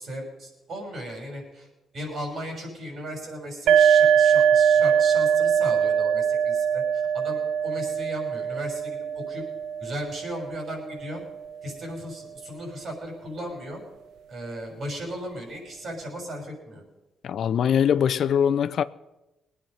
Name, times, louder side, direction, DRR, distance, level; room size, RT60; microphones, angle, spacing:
voice 1, 0.0-1.7 1.9-9.4 9.8-11.2 11.6-13.8 14.3-16.8, equal, 55° right, 6.7 m, -36 dB
sound 1, 3.7-11.2, right 8 dB, 75° right, 0.5 m, -22 dB
voice 2, 17.2-18.8, left 8 dB, 65° left, 0.5 m, -22 dB
21.0 x 9.4 x 5.6 m
cardioid pair, 90°, 0 cm